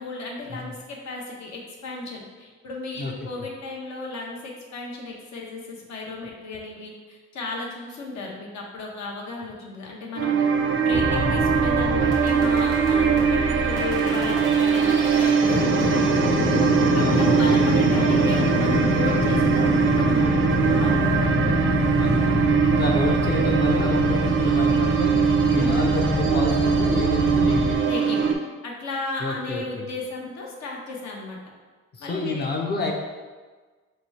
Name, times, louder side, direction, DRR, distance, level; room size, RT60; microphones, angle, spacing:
voice 1, 0.0-10.4 10.8-16.2 16.9-21.3 22.9-23.1 25.5-26.0 27.9-28.4 28.6-31.4 32.0-32.5, left 3 dB, 65° left, -1 dB, 0.9 m, -35 dB
sound 1, 10.2-28.3, right 6 dB, 40° right, 0.4 m, -22 dB
sound 2, 10.9-27.7, left 1 dB, 90° left, 1.0 m, -25 dB
voice 2, 11.1-11.5 16.9-17.7 21.9-25.2 25.5-27.9 29.2-29.9 31.9-32.9, left 2 dB, 35° left, 2 dB, 0.6 m, -29 dB
3.0 x 2.3 x 4.2 m, 1.4 s
cardioid pair, 90°, 30 cm